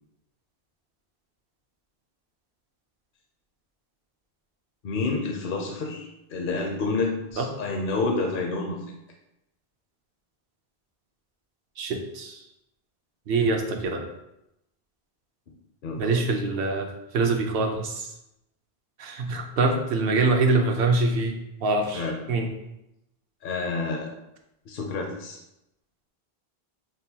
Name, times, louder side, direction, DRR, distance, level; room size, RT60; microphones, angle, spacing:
voice 1, 4.8-8.8 15.8-16.2 21.9-22.2 23.4-24.1 24.7-25.4, left 3 dB, 60° left, 0 dB, 0.7 m, -29 dB
voice 2, 11.8-12.4 13.3-14.0 16.0-16.9 17.1-18.1 19.0-21.4 21.6-22.5, right 3 dB, 70° right, 3 dB, 0.8 m, -24 dB
6.1 x 2.2 x 2.7 m, 0.87 s
omnidirectional pair, 1.0 m